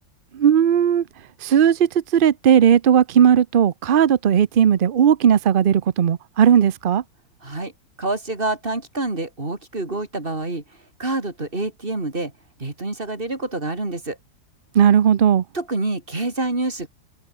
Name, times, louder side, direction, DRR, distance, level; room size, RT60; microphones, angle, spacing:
voice 1, 0.3-1.0 1.4-7.0 14.7-15.4, right 8 dB, 85° right, 0.4 m, -16 dB
voice 2, 7.4-7.7 8.0-10.6 11.0-12.3 12.6-14.2 15.5-16.9, right 2 dB, 30° right, 3.8 m, -27 dB
open air
omnidirectional pair, 1.9 m